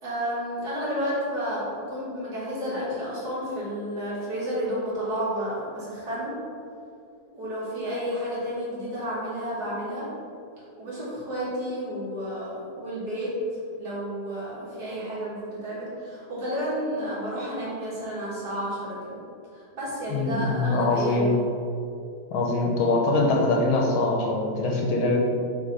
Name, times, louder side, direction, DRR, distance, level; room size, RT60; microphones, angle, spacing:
voice 1, 0.0-6.3 7.3-10.1 10.6-19.2 19.5-21.4, equal, 45° right, -8 dB, 2.1 m, -31 dB
voice 2, 20.1-21.3 22.3-25.2, left 2 dB, 75° left, -1 dB, 1.6 m, -23 dB
6.3 x 3.7 x 4.0 m, 2.5 s
omnidirectional pair, 2.3 m